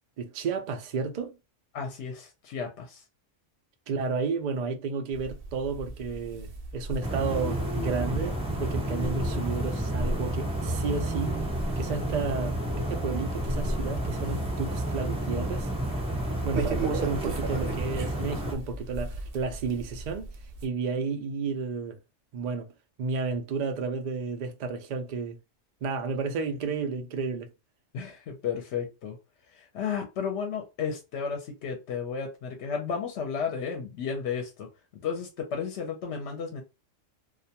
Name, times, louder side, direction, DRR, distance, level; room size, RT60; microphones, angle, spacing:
voice 1, 0.2-1.3 3.9-11.4 11.8-15.7 16.4-20.3 20.6-22.0 22.3-22.7 23.0-25.4 25.8-27.5, right 4 dB, 85° right, 0.3 m, -32 dB
voice 2, 1.7-3.0 27.9-29.2 29.6-34.7 35.0-36.6, left 6 dB, 70° left, 0.8 m, -33 dB
sound 1, 5.1-20.7, right 2 dB, 60° right, 0.7 m, -37 dB
sound 2, 7.0-18.5, right 1 dB, 10° right, 0.3 m, -31 dB
2.3 x 2.1 x 2.7 m
omnidirectional pair, 1.3 m